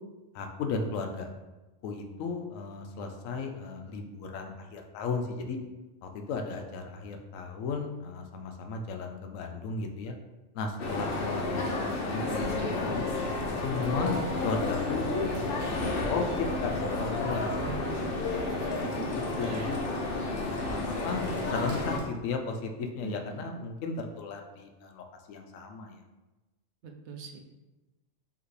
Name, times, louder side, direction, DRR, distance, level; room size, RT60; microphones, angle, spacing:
voice 1, 0.3-1.3 1.8-5.6 6.0-10.1 10.5-13.1 13.6-14.2 14.4-16.3 16.6-17.7 19.1-19.8 20.6-26.0, left 4 dB, 90° left, 4 dB, 1.0 m, -35 dB
sound 1, 10.8-22.0, left 2 dB, 55° left, 0.8 m, -31 dB
Bird, 12.3-22.1, left 1 dB, 15° right, 0.7 m, -44 dB
voice 2, 17.5-19.1 19.4-19.7 23.0-23.6 26.8-27.4, right 5 dB, 70° right, 3 dB, 0.8 m, -43 dB
5.0 x 2.9 x 3.1 m, 1.1 s
omnidirectional pair, 1.3 m